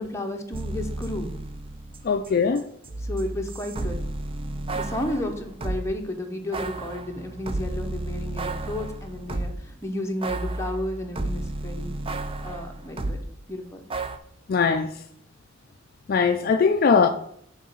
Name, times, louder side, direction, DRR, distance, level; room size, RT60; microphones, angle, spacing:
voice 1, 0.0-1.3 3.0-4.0 4.7-11.9 12.4-13.2 13.5-13.8, left 1 dB, 15° left, 0.9 m, -32 dB
sound 1, 0.5-2.3 2.6-5.9 6.5-9.7 10.2-13.2 13.9-14.2, right 2 dB, 30° right, 0.4 m, -32 dB
voice 2, 2.0-2.6 14.5-14.9 16.1-17.1, left 5 dB, 50° left, 0.4 m, -20 dB
6.3 x 3.9 x 5.5 m
head